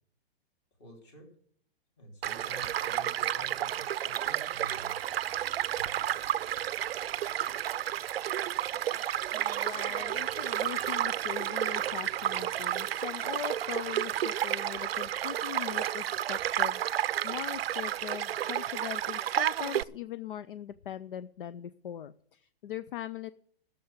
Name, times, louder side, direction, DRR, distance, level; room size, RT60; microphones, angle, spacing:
voice 1, 0.8-1.3 2.0-5.0 5.7-5.9, equal, 25° left, 1 dB, 3.1 m, -50 dB
Child speech kid speaking / Stream / Car passing by, 2.2-19.8, right 11 dB, 70° right, 0.5 m, -31 dB
voice 2, 9.3-23.3, left 11 dB, 60° left, 14 dB, 0.5 m, -41 dB
14.0 x 6.9 x 8.0 m, 0.63 s
hypercardioid pair, 180°, 31 cm